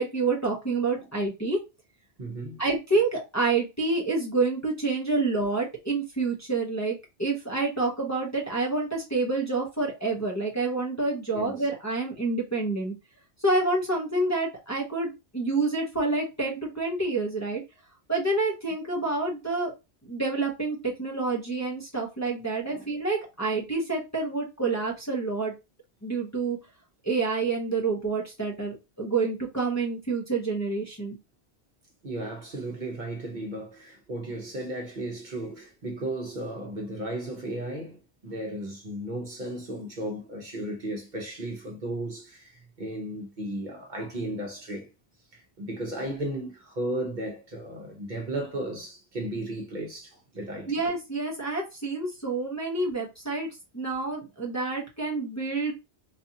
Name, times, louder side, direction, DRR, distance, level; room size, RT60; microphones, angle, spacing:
voice 1, 0.0-1.6 2.6-12.9 13.4-17.6 18.1-19.7 20.0-25.5 26.0-26.6 27.0-31.2 50.7-53.5 53.7-55.7, right 3 dB, 15° left, 0.8 m, -28 dB
voice 2, 2.2-2.6 11.3-11.5 22.7-22.9 32.0-44.9 45.3-50.8, right 1 dB, 50° right, 1.0 m, -35 dB
4.0 x 2.5 x 2.8 m
omnidirectional pair, 1.1 m